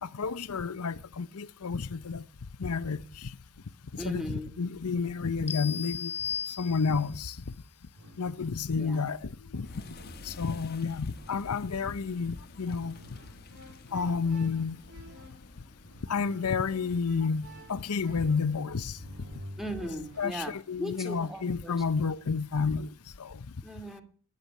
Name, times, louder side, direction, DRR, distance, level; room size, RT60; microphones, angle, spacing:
voice 1, 0.0-2.3 2.6-3.3 3.9-6.1 6.5-7.4 8.2-9.7 10.2-13.0 13.9-14.8 16.1-19.0 20.2-22.9 23.2-23.5, left 5 dB, 85° left, 0.7 m, -30 dB
voice 2, 4.0-4.5 8.8-9.0 19.6-20.5 20.8-21.8 23.6-24.0, equal, ahead, 2.3 m, -37 dB
sound 1, 5.5-7.2, left 7 dB, 30° left, 1.0 m, -36 dB
royal music loop, 6.9-7.4 7.9-8.5 9.5-10.5 11.1-11.7 12.7-20.3, equal, 80° right, 6.3 m, -50 dB
sound 2, 9.6-20.6, left 2 dB, 45° left, 1.2 m, -52 dB
13.5 x 11.0 x 8.5 m
head